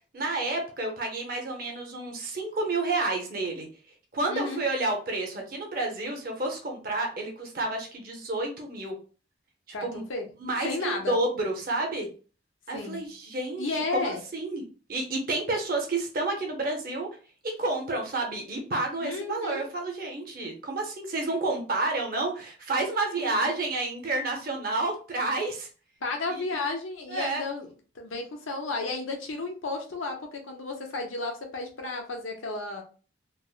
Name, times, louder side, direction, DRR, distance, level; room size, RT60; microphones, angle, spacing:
voice 1, 0.1-3.7 4.1-9.0 9.8-10.0 10.4-12.1 12.7-14.6 14.9-17.1 17.6-25.7 26.5-26.6 27.1-27.4, right 2 dB, 45° right, 2 dB, 0.8 m, -30 dB
voice 2, 4.3-4.6 9.7-10.3 10.6-11.2 12.7-13.0 13.6-14.2 19.0-19.7 23.2-23.4 26.0-32.8, left 3 dB, 85° left, 3 dB, 0.8 m, -33 dB
3.4 x 2.0 x 2.4 m, 0.37 s
head